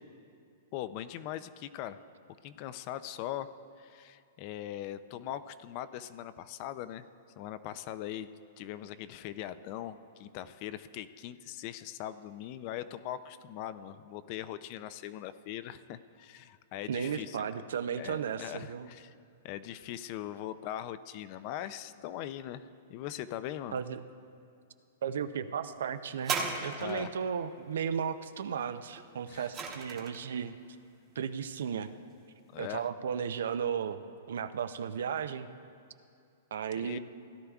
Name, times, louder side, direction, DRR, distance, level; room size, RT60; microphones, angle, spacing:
voice 1, 0.7-2.0 2.4-3.5 3.8-7.0 7.4-8.3 8.6-17.4 18.0-19.1 19.4-23.8 26.8-27.1 29.3-29.5 32.5-32.9 36.7-37.0, left 12 dB, 40° left, 14 dB, 0.4 m, -41 dB
voice 2, 16.9-18.9 23.7-24.0 25.0-30.5 31.2-31.9 32.6-34.0 34.3-35.5 36.5-37.0, right 7 dB, 80° right, 11 dB, 0.5 m, -35 dB
sound 1, 26.2-27.2 29.0-30.3 31.1-31.2, right 5 dB, 25° right, 1.1 m, -36 dB
17.0 x 11.0 x 2.4 m, 2.5 s
hypercardioid pair, 155°, 0 cm